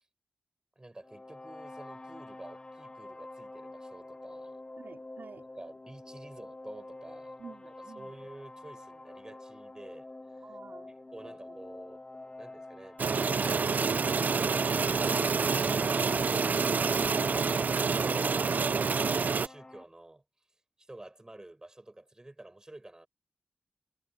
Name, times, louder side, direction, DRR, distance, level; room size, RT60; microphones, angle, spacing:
voice 1, 0.8-4.6 5.6-7.4 7.7-10.1 10.4-10.5 10.9-13.9 17.5-20.2 20.8-23.1, right 2 dB, 20° right, 6.9 m, -50 dB
sound 1, 1.0-19.8, left 2 dB, 25° left, 1.4 m, -47 dB
voice 2, 4.8-5.4 7.4-8.2 10.4-10.9 11.2-11.6 17.0-17.6, right 5 dB, 75° right, 4.5 m, -49 dB
sound 2, 13.0-19.5, right 5 dB, 60° right, 0.5 m, -27 dB
wide cardioid pair, 90°, 3 cm